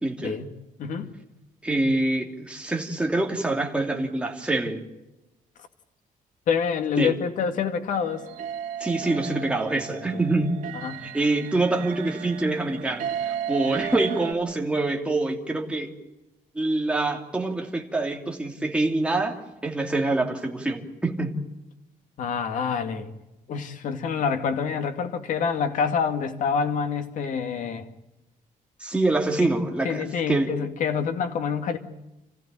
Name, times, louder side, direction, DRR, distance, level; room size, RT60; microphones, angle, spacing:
voice 1, 0.0-0.4 1.6-4.8 7.0-7.1 8.8-10.6 11.0-15.9 16.5-21.4 28.8-30.5, right 2 dB, 5° right, 1 dB, 2.9 m, -25 dB
voice 2, 0.8-1.1 6.5-8.3 10.1-10.2 10.7-11.0 22.2-23.1 23.5-27.9 29.8-31.8, left 6 dB, 65° left, 6 dB, 2.3 m, -27 dB
sound 1, 7.9-14.3, right 9 dB, 60° right, 2.7 m, -34 dB
29.5 x 15.5 x 9.1 m, 0.99 s
cardioid pair, 170°, 15 cm